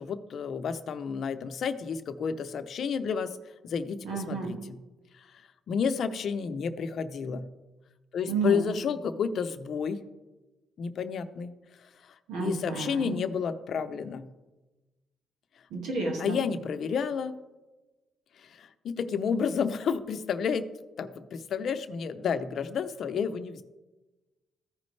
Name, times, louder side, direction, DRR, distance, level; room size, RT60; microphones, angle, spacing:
voice 1, 0.0-3.4 3.6-4.8 5.2-5.3 5.7-7.5 8.1-10.0 10.8-11.5 12.0-14.3 16.2-17.3 18.4-20.7 21.0-23.6, left 6 dB, 60° left, 10 dB, 0.6 m, -31 dB
voice 2, 4.0-4.5 8.3-8.7 12.3-13.2 15.7-16.4, right 3 dB, 90° right, 1 dB, 1.8 m, -31 dB
14.5 x 5.1 x 3.2 m, 1.1 s
cardioid pair, 90°, 0 cm